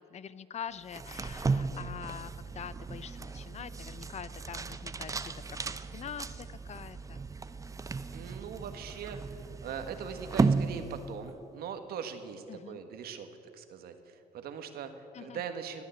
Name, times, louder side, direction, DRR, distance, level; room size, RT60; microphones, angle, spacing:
voice 1, 0.0-7.2 12.5-12.8 15.1-15.4, left 8 dB, 45° left, 16 dB, 0.6 m, -44 dB
sound 1, 0.9-11.4, right 4 dB, 20° right, 0.6 m, -35 dB
voice 2, 8.1-13.3 13.5-15.8, right 7 dB, 70° right, 8 dB, 1.5 m, -41 dB
19.0 x 9.7 x 7.9 m, 2.9 s
cardioid pair, 95°, 16 cm